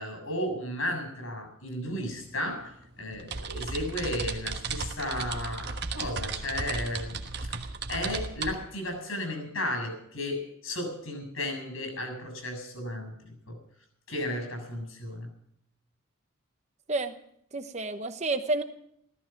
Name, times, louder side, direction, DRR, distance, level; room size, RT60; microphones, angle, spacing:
voice 1, 0.0-7.2 7.9-13.2 13.5-13.6 14.1-15.3, left 1 dB, 75° left, 6 dB, 7.0 m, -34 dB
sound 1, 1.9-2.0 2.3-8.5, right 4 dB, 50° right, 1.3 m, -35 dB
voice 2, 17.5-18.6, right 2 dB, 30° right, 8 dB, 1.0 m, -29 dB
15.5 x 14.0 x 6.0 m, 0.71 s
head